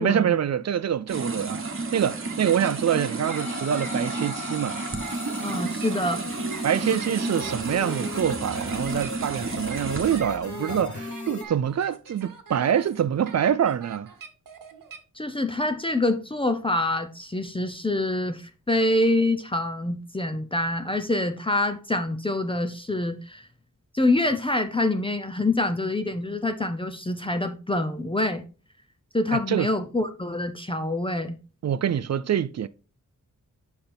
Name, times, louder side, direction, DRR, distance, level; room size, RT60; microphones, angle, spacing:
voice 1, 0.0-4.8 6.6-14.1 29.3-29.7 31.6-32.7, right 9 dB, 55° right, 0.4 m, -25 dB
sound 1, 1.1-10.2, right 3 dB, 40° right, 1.1 m, -32 dB
sound 2, 2.2-15.0, right 6 dB, 90° right, 1.1 m, -43 dB
sound 3, 3.3-11.4, left 2 dB, 65° left, 1.4 m, -37 dB
voice 2, 5.4-6.3 15.2-23.4 23.9-28.4 29.1-31.4, left 2 dB, 15° left, 0.6 m, -26 dB
8.0 x 5.7 x 3.4 m
wide cardioid pair, 130°, 32 cm